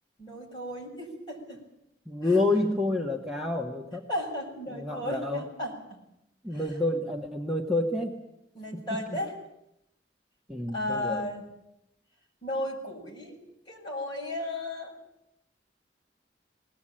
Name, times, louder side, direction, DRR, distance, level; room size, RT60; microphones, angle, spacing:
voice 1, 0.2-1.6 4.1-6.0 6.5-6.6 8.5-9.3 10.7-11.4 12.4-13.4 13.7-14.9, left 1 dB, 25° left, -2 dB, 7.1 m, -34 dB
voice 2, 2.0-4.1 4.7-5.5 6.4-8.2 8.7-9.2 10.5-11.3, left 2 dB, 5° right, -1 dB, 1.5 m, -29 dB
20.5 x 19.0 x 8.9 m, 0.83 s
head